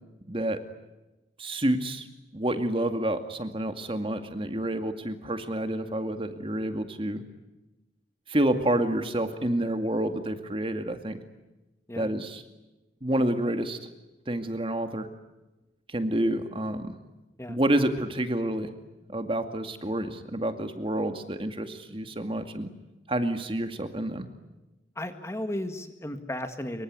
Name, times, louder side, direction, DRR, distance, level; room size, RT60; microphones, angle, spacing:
voice 1, 0.3-0.6 1.4-2.0 2.3-7.2 8.3-11.2 12.0-12.4 13.0-13.8 14.3-15.1 15.9-16.9 17.5-18.7 19.1-22.7 23.1-24.3, right 1 dB, 30° right, 7 dB, 2.2 m, -28 dB
voice 2, 25.0-26.8, left 1 dB, 15° left, 8 dB, 1.7 m, -34 dB
26.0 x 24.0 x 9.5 m, 1.0 s
head